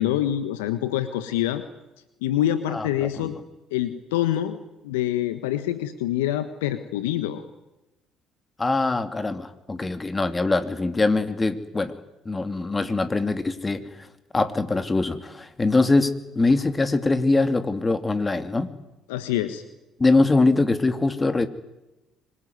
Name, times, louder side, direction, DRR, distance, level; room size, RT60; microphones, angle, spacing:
voice 1, 0.0-1.6 2.2-3.4 3.7-4.6 4.8-7.4 19.1-19.6, left 12 dB, 80° left, 10 dB, 1.3 m, -25 dB
voice 2, 2.7-3.3 8.6-11.9 12.2-14.1 14.3-18.7 20.0-21.5, left 3 dB, 25° left, 9 dB, 2.8 m, -23 dB
25.0 x 22.0 x 9.6 m, 0.98 s
hypercardioid pair, 55°, 0 cm